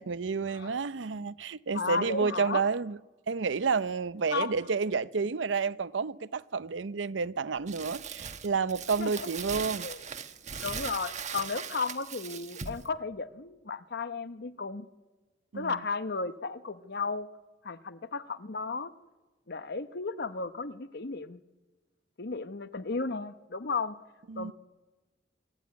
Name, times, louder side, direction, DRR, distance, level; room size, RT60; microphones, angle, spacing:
voice 1, 0.0-3.0 3.3-9.9 15.5-15.8 24.3-24.5, right 5 dB, 80° right, 0.6 m, -30 dB
voice 2, 1.7-2.6 4.3-4.5 9.0-9.3 9.8-10.0 10.6-14.9 15.5-17.3 17.6-18.9 19.5-21.4 22.2-23.9 24.4-24.5, left 4 dB, 60° left, 1.0 m, -34 dB
Crumpling crinkling, 7.7-12.9, right 7 dB, 40° right, 1.2 m, -39 dB
25.0 x 15.0 x 9.5 m
head